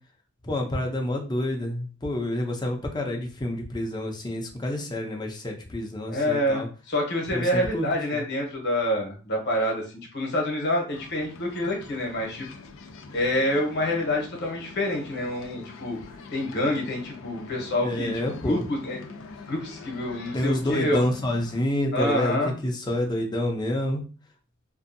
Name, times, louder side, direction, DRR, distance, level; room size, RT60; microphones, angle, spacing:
voice 1, 0.4-6.7 7.3-8.2 17.8-18.6 20.3-22.4 22.6-24.0, left 1 dB, 20° left, 2 dB, 0.5 m, -28 dB
voice 2, 6.1-9.8 10.1-12.5 13.1-16.0 16.3-18.1 18.4-19.0 19.5-21.0 21.9-22.5, left 1 dB, 60° left, 0 dB, 0.9 m, -27 dB
sound 1, 10.9-21.6, left 3 dB, 85° left, 0.4 m, -43 dB
2.6 x 2.3 x 2.6 m, 0.36 s
head